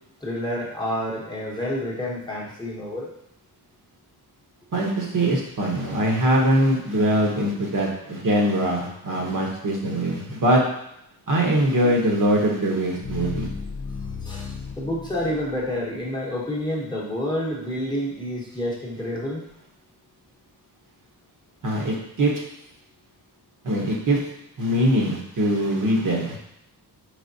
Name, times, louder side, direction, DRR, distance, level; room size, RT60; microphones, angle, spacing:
voice 1, 0.2-3.1 14.2-19.4, left 1 dB, 10° left, -4 dB, 0.9 m, -29 dB
voice 2, 4.7-10.6 11.3-13.5 21.6-22.3 23.6-24.2 24.6-26.4, right 1 dB, 50° right, -1 dB, 1.0 m, -22 dB
sound 1, 11.8-15.9, left 5 dB, 75° left, 0.7 m, -35 dB
4.9 x 3.4 x 2.7 m, 0.78 s
wide cardioid pair, 130°, 40 cm